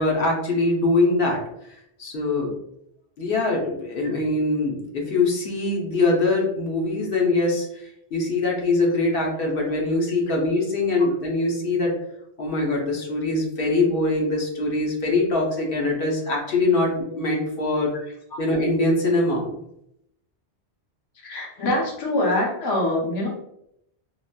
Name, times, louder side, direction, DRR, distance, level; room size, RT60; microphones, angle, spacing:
voice 1, 0.0-1.4 2.0-2.6 3.2-11.9 12.4-17.9 18.4-19.5, left 2 dB, 60° left, -1 dB, 0.8 m, -23 dB
voice 2, 21.2-23.3, left 1 dB, 30° left, -2 dB, 0.5 m, -24 dB
3.8 x 2.1 x 2.2 m, 0.79 s
omnidirectional pair, 1.1 m